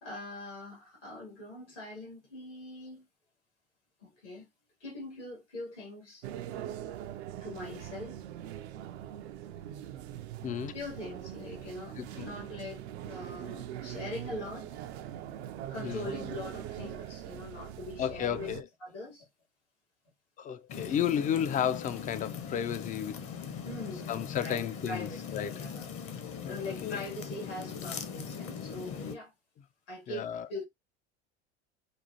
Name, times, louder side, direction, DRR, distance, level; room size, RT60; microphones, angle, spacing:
voice 1, 0.0-3.1 4.0-4.5 4.8-6.3 7.4-8.2 10.7-14.8 15.7-18.5 18.8-19.3 23.7-25.9 26.5-29.3 29.9-30.6, left 2 dB, 80° left, 2.4 m, -42 dB
sound 1, 6.2-18.6, right 11 dB, 65° right, 0.6 m, -42 dB
voice 2, 10.4-10.7 12.0-12.3 15.8-16.1 18.0-18.7 20.4-23.2 24.1-25.6 26.4-26.5 26.8-27.0 30.1-30.5, left 9 dB, 25° left, 0.4 m, -32 dB
sound 2, 20.7-29.2, left 6 dB, 40° left, 0.9 m, -40 dB
5.2 x 2.4 x 2.7 m
figure-of-eight pair, 70°, 34 cm